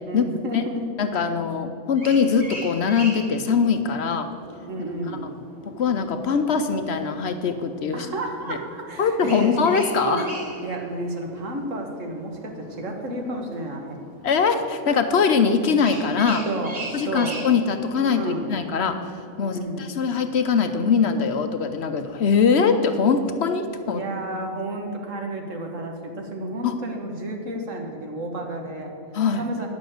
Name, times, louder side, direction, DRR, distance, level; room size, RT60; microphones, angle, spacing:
voice 1, 0.1-0.8 4.7-5.4 7.9-9.5 10.0-10.3 10.6-14.0 16.5-17.5 18.0-18.6 19.4-19.9 23.8-29.0 29.4-29.7, right 1 dB, 70° right, 2 dB, 1.7 m, -31 dB
voice 2, 1.0-4.3 5.8-8.1 8.5-8.6 9.0-10.3 14.2-16.5 16.9-19.0 19.4-24.0 26.6-26.7 29.1-29.4, left 5 dB, 60° left, 8 dB, 0.9 m, -22 dB
sound 1, 1.8-19.6, right 1 dB, 35° right, 2.1 m, -42 dB
9.9 x 7.0 x 7.7 m, 2.6 s
omnidirectional pair, 1.4 m